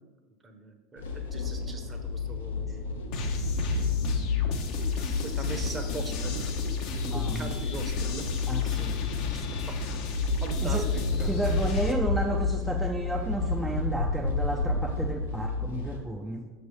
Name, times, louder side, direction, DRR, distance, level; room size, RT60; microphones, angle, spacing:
voice 1, 0.4-3.2 3.7-4.2 4.9-6.6 6.9-8.3 9.0-9.8 10.4-11.6, right 3 dB, 25° right, 5 dB, 0.9 m, -41 dB
sound 1, 1.0-16.0, left 3 dB, 85° left, 0.9 m, -30 dB
sound 2, 3.1-11.9, left 7 dB, 55° left, 0.8 m, -33 dB
voice 2, 7.0-7.5 8.5-8.9 10.6-10.9 11.2-16.5, right 1 dB, 5° right, 0 dB, 0.5 m, -32 dB
6.0 x 3.3 x 5.4 m, 1.4 s
hypercardioid pair, 85°, 0 cm